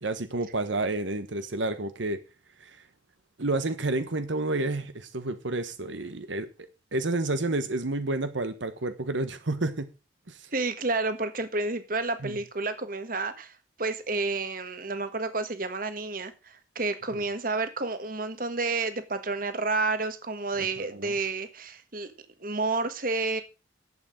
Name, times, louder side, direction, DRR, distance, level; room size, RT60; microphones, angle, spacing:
voice 1, 0.0-2.2 2.6-2.8 3.4-6.5 6.9-9.9 10.3-10.5 12.2-12.4 17.1-17.2 20.6-21.1, right 2 dB, 80° right, 1.2 m, -30 dB
voice 2, 10.5-13.5 13.8-22.1 22.4-23.4, right 3 dB, 45° right, 1.5 m, -30 dB
11.0 x 8.1 x 6.3 m
head